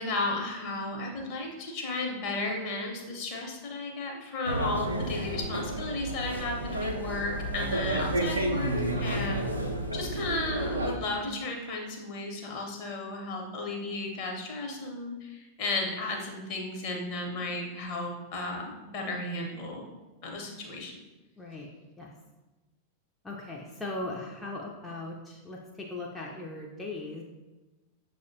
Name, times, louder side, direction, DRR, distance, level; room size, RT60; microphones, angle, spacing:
voice 1, 0.0-8.7 9.0-9.3 9.9-19.9 20.2-21.0, left 2 dB, 45° left, 0 dB, 0.8 m, -34 dB
sound 1, 4.4-10.9, right 1 dB, 80° right, 0.4 m, -31 dB
voice 2, 8.9-9.3 21.4-21.7 22.0-22.1 23.2-27.2, left 2 dB, 10° left, -3 dB, 0.4 m, -39 dB
6.2 x 2.1 x 2.7 m, 1.1 s
figure-of-eight pair, 90°, 0 cm